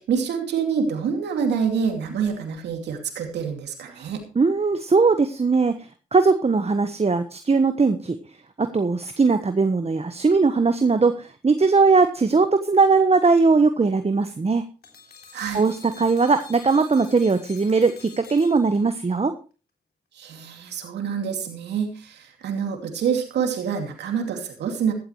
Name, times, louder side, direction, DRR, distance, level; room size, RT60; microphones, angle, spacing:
voice 1, 0.0-4.2 15.3-15.6 20.1-24.9, right 6 dB, 90° right, 4 dB, 2.6 m, -26 dB
voice 2, 4.3-5.8 6.1-8.2 8.6-14.7 15.5-19.3, right 4 dB, 35° right, 9 dB, 1.3 m, -19 dB
sound 1, 14.8-19.1, left 6 dB, 70° left, 3.3 m, -47 dB
15.0 x 12.5 x 3.2 m, 0.34 s
supercardioid pair, 40°, 17 cm